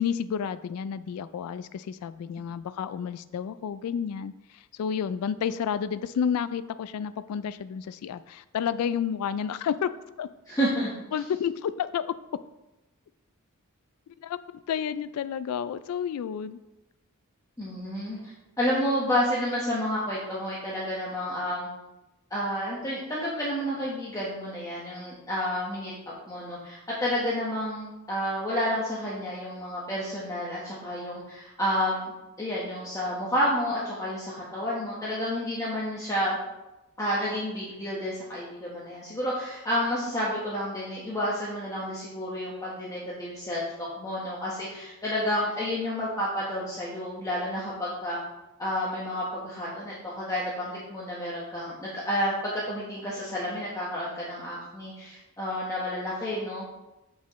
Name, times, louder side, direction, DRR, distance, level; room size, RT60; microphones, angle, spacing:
voice 1, 0.0-9.9 10.2-10.3 11.1-12.1 14.2-16.6, left 8 dB, 80° left, 15 dB, 0.3 m, -30 dB
voice 2, 10.5-10.9 17.6-18.3 18.6-21.7 22.3-32.1 32.4-36.4 37.0-43.6 44.0-48.2 48.6-56.7, equal, 15° left, -7 dB, 1.2 m, -30 dB
7.2 x 6.2 x 3.1 m, 0.97 s
head